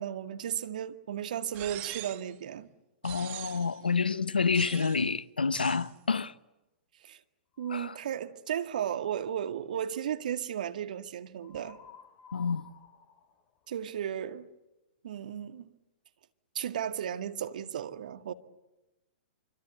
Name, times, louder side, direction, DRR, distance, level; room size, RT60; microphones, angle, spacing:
voice 1, 0.0-2.7 7.0-7.2 7.6-11.8 13.7-14.5 15.0-15.7 16.5-18.3, right 9 dB, 60° right, 1.8 m, -35 dB
sound 1, 1.5-2.3 3.0-3.8 4.5-5.1 5.5-5.9, right 19 dB, 35° right, 1.2 m, -43 dB
voice 2, 3.0-6.3 7.7-7.9 12.3-12.6, left 5 dB, 80° left, 0.9 m, -28 dB
sound 2, 7.5-8.1 11.4-14.2, left 8 dB, 30° left, 2.3 m, -54 dB
26.0 x 26.0 x 8.0 m
figure-of-eight pair, 110°, 5 cm